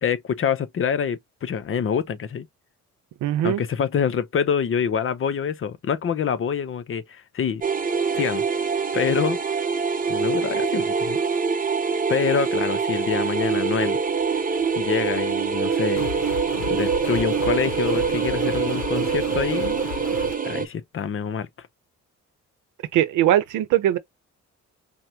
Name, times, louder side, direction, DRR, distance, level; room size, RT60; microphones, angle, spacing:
voice 1, 0.0-2.5 3.4-7.6 8.1-8.4 8.9-9.4 10.1-11.2 12.1-14.0 14.8-16.1 16.7-19.8 20.4-21.5, left 7 dB, 45° left, 0.7 m, -26 dB
voice 2, 3.2-3.6 22.9-24.0, right 12 dB, 85° right, 0.7 m, -20 dB
sound 1, 7.6-20.7, right 5 dB, 30° right, 0.7 m, -24 dB
sound 2, 16.0-20.4, left 9 dB, 80° left, 0.7 m, -35 dB
5.7 x 2.2 x 2.8 m
cardioid pair, 90°, 30 cm